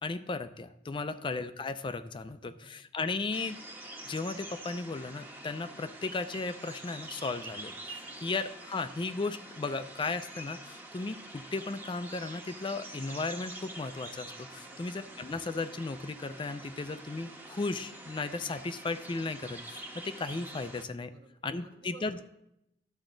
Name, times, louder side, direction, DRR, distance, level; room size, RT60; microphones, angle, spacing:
voice 1, 0.0-3.6 4.0-21.1 21.4-22.2, left 3 dB, 30° left, 11 dB, 0.4 m, -36 dB
voice 2, 2.4-2.8 8.0-8.3 14.6-15.0 21.1-22.2, right 3 dB, 70° right, 2 dB, 1.5 m, -56 dB
sound 1, 3.3-20.8, right 1 dB, 10° right, 1.1 m, -46 dB
12.0 x 7.2 x 3.9 m, 0.82 s
head